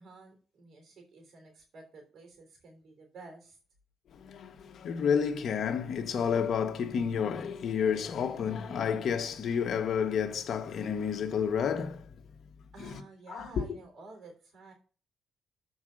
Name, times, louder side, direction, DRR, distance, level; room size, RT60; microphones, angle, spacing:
voice 1, 0.0-3.6 12.7-14.7, right 3 dB, 60° right, 3.3 m, -51 dB
voice 2, 4.1-12.0 13.3-13.6, left 7 dB, 60° left, 1.3 m, -30 dB
7.1 x 4.9 x 6.4 m
cardioid pair, 90°, 0 cm